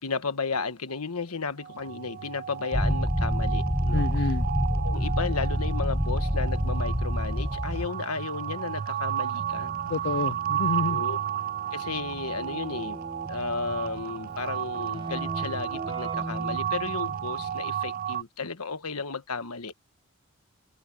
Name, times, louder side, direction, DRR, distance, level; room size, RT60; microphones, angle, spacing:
voice 1, 0.0-4.3 4.7-9.8 10.9-11.2 11.7-13.0 13.3-19.7, left 4 dB, 90° left, 1.4 m, -34 dB
sound 1, 1.6-18.2, right 9 dB, 40° right, 0.3 m, -32 dB
sound 2, 2.7-7.9, equal, 10° left, 0.9 m, -27 dB
voice 2, 3.9-4.5 9.9-11.0, left 3 dB, 50° left, 0.5 m, -29 dB
Keyboard (musical), 9.4-17.8, right 1 dB, 20° right, 1.2 m, -41 dB
head